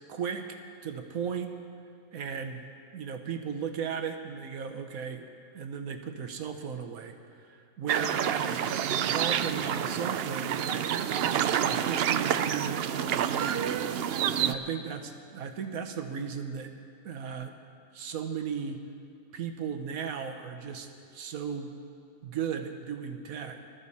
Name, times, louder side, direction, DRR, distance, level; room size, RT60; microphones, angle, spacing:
voice 1, 0.1-1.5 2.1-2.6 2.9-5.2 5.5-16.7 17.0-17.5 17.9-18.8 19.3-21.7 22.2-23.6, right 7 dB, 85° right, 6 dB, 1.4 m, -36 dB
sound 1, 7.9-14.5, right 9 dB, 65° right, 0.6 m, -28 dB
20.0 x 13.5 x 4.2 m, 2.4 s
omnidirectional pair, 1.4 m